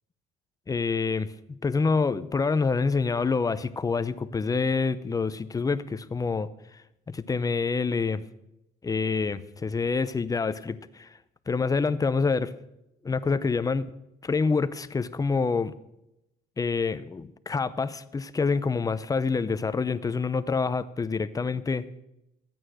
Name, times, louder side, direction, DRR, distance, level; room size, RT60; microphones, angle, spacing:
voice 1, 0.7-1.3 1.6-6.5 7.1-8.2 8.8-11.1 11.5-12.5 13.0-13.9 14.2-15.7 16.6-21.9, left 4 dB, 20° left, 0.6 m, -27 dB
13.5 x 8.9 x 6.3 m
cardioid pair, 110°, 17 cm